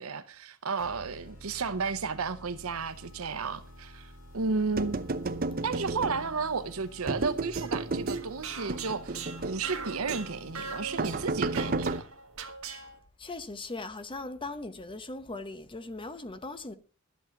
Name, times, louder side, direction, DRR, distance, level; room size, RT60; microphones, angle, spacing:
voice 1, 0.0-5.0 5.6-12.0, right 4 dB, 90° right, 0.8 m, -33 dB
sound 1, 0.8-12.2, left 1 dB, 75° left, 6.6 m, -51 dB
sound 2, 4.8-6.5 7.1-8.3 8.7-9.7 10.1-10.3 11.0-12.0, right 3 dB, 45° right, 0.8 m, -32 dB
sound 3, 7.3-13.0, right 5 dB, 75° right, 1.6 m, -41 dB
voice 2, 13.2-16.7, left 2 dB, 25° left, 0.9 m, -39 dB
12.5 x 8.2 x 5.9 m
head